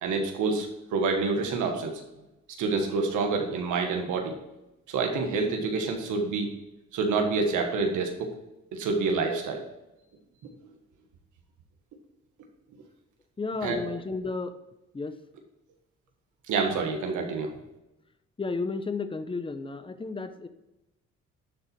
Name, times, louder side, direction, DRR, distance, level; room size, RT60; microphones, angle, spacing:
voice 1, 0.0-1.9 2.6-4.4 4.9-6.5 6.9-8.3 8.7-9.6 13.6-13.8 16.5-17.5, right 4 dB, 85° right, 3 dB, 1.6 m, -27 dB
voice 2, 13.4-14.6 14.9-15.1 18.4-20.5, left 4 dB, 15° left, 9 dB, 0.8 m, -32 dB
11.0 x 4.1 x 4.6 m, 0.95 s
cardioid pair, 90°, 30 cm